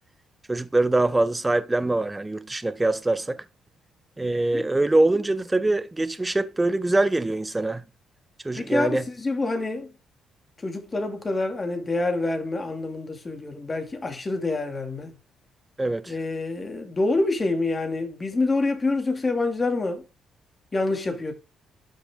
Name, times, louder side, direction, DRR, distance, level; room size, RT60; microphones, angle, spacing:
voice 1, 0.5-3.4 4.2-7.8 8.4-9.0 15.8-16.1, right 2 dB, 15° right, 0.9 m, -23 dB
voice 2, 8.6-9.9 10.6-15.1 16.1-20.0 20.7-21.3, left 2 dB, 25° left, 2.6 m, -26 dB
11.5 x 6.5 x 3.7 m
cardioid pair, 90°, 0 cm